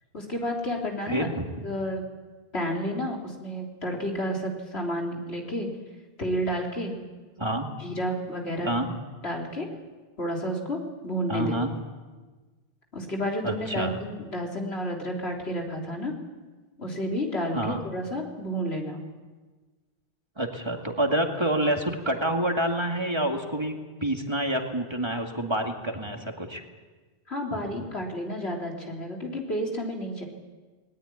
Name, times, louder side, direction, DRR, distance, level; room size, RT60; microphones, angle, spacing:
voice 1, 0.1-1.3 1.6-2.0 2.5-5.7 6.2-7.0 7.8-8.7 9.2-9.7 10.2-11.6 12.9-16.2 16.8-19.0 27.3-30.2, equal, 85° left, 0 dB, 3.9 m, -31 dB
voice 2, 1.1-1.5 7.4-7.7 8.6-8.9 11.3-11.7 13.4-14.0 17.5-17.8 20.4-23.7 24.0-26.6, right 1 dB, 25° right, 2 dB, 2.3 m, -27 dB
20.5 x 19.0 x 9.6 m, 1.3 s
omnidirectional pair, 1.1 m